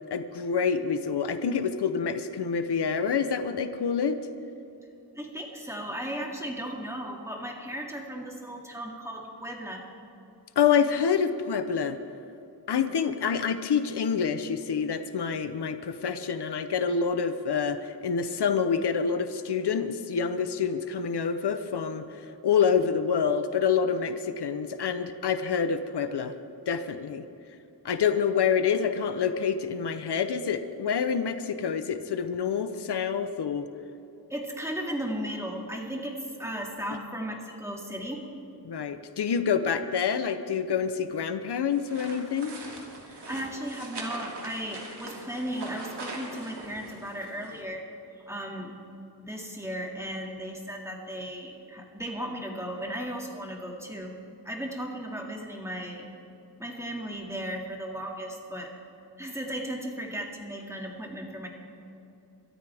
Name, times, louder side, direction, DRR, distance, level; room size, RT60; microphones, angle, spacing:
voice 1, 0.1-4.2 10.6-12.0 12.7-26.3 26.7-27.3 27.8-33.7 38.6-42.6, left 6 dB, 85° left, 10 dB, 0.8 m, -27 dB
voice 2, 5.2-9.9 34.3-38.2 43.0-47.9 48.2-48.8 49.2-54.2 54.4-56.1 56.6-58.7 59.2-61.5, equal, 5° right, 0 dB, 2.2 m, -36 dB
sound 1, 41.7-47.6, right 2 dB, 90° right, 2.8 m, -41 dB
23.0 x 13.0 x 3.5 m, 3.0 s
wide cardioid pair, 115°, 39 cm